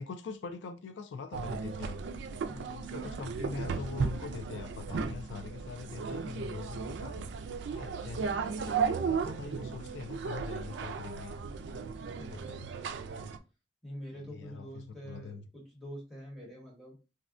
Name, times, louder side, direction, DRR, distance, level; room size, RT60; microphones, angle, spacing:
voice 1, 0.0-2.0 2.5-7.3 7.7-11.4 12.0-12.7 14.1-15.5, left 5 dB, 75° left, 0.3 m, -43 dB
sound 1, 1.3-13.4, right 5 dB, 70° right, 0.3 m, -35 dB
voice 2, 2.5-2.9 12.2-12.7 13.8-16.9, equal, ahead, 1.0 m, -46 dB
3.4 x 2.1 x 2.4 m
head